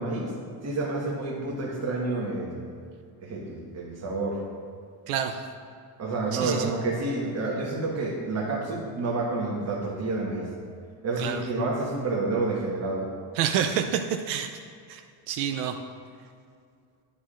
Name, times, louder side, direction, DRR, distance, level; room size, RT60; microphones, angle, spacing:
voice 1, 0.0-2.7 3.2-4.4 6.0-10.5 11.0-13.1, right 2 dB, 30° right, -2 dB, 1.4 m, -29 dB
voice 2, 5.1-5.4 6.3-6.7 11.2-11.4 13.4-14.5 14.9-15.0 15.3-15.8, right 9 dB, 85° right, 5 dB, 0.6 m, -28 dB
8.6 x 8.4 x 2.5 m, 2.2 s
cardioid pair, 120°, 49 cm